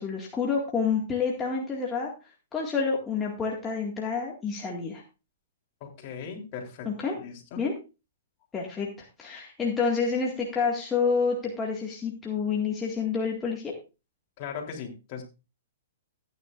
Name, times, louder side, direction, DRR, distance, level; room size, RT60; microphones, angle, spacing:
voice 1, 0.0-2.1 2.5-5.0 6.9-7.2 7.6-7.7 8.5-8.9 9.2-13.7, left 5 dB, 15° left, -2 dB, 2.0 m, -28 dB
voice 2, 5.8-7.6 14.4-15.2, left 6 dB, 45° left, 1 dB, 3.4 m, -39 dB
15.0 x 9.7 x 2.5 m, 0.30 s
hypercardioid pair, 135°, 0 cm